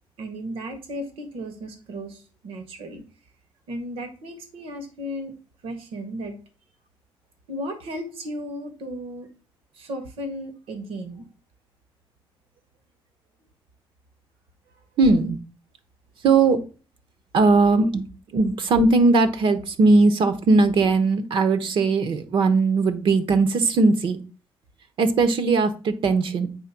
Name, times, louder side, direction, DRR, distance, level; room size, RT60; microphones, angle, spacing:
voice 1, 0.2-3.0 3.7-5.3 5.6-6.4 7.5-9.3 9.7-11.3, equal, 85° right, 6 dB, 1.8 m, -35 dB
voice 2, 15.0-15.4 16.2-16.6 17.3-24.2 25.0-26.5, right 3 dB, 65° right, 9 dB, 0.9 m, -19 dB
8.2 x 3.4 x 5.9 m, 0.36 s
cardioid pair, 135°, 9 cm